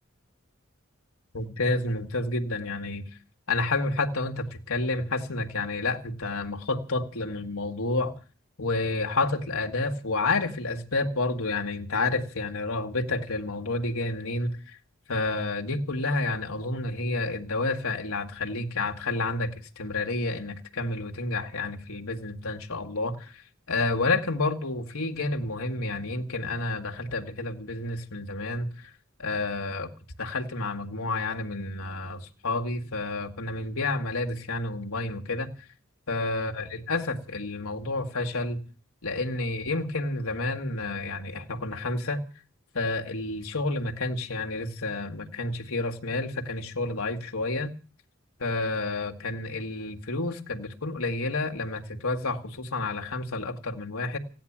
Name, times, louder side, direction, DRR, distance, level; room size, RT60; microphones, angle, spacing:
voice 1, 1.3-3.1 3.5-8.2 8.6-14.8 15.1-23.4 23.7-28.9 29.2-29.9 30.2-35.5 36.1-38.6 39.0-42.2 42.7-47.7 48.4-54.2, left 2 dB, 85° left, 1.8 m, -30 dB
16.0 x 10.0 x 8.6 m
head